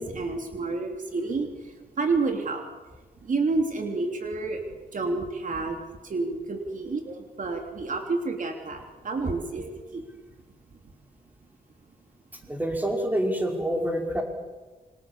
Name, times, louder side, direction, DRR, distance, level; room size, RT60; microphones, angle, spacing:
voice 1, 0.0-2.6 3.2-5.8 6.0-10.0, right 3 dB, 55° right, 3 dB, 3.3 m, -29 dB
voice 2, 12.5-14.2, right 1 dB, 10° right, 2 dB, 5.5 m, -27 dB
28.0 x 25.0 x 7.5 m, 1.3 s
wide cardioid pair, 115°, 16 cm